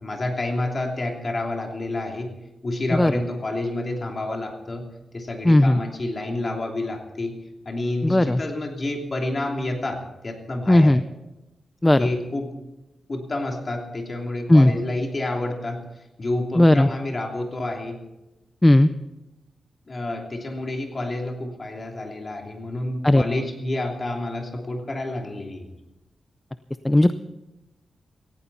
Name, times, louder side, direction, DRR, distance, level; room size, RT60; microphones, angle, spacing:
voice 1, 0.0-2.3 2.6-4.8 5.1-7.3 7.6-10.0 10.2-10.9 12.0-12.6 13.1-18.0 19.9-25.6, left 2 dB, 35° left, 2 dB, 3.0 m, -29 dB
voice 2, 5.4-5.8 8.0-8.4 10.7-11.0 11.8-12.1 14.5-14.7 16.6-16.9 18.6-18.9 23.0-23.2 26.8-27.1, left 1 dB, 10° left, 12 dB, 0.5 m, -15 dB
18.0 x 15.5 x 4.2 m, 0.99 s
wide cardioid pair, 125°, 0 cm